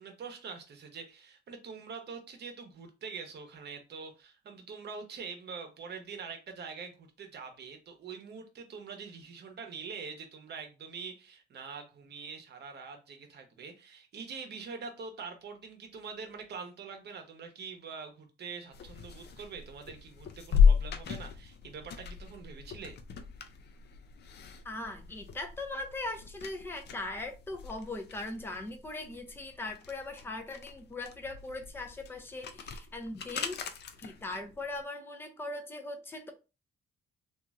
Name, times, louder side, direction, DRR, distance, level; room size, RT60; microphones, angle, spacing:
voice 1, 0.0-23.0, right 5 dB, 55° right, 0.8 m, -44 dB
sound 1, 18.7-34.8, left 6 dB, 60° left, 0.5 m, -34 dB
voice 2, 24.6-33.6 34.0-36.3, left 2 dB, 10° left, 0.5 m, -40 dB
2.9 x 2.5 x 2.4 m
cardioid pair, 90°, 20 cm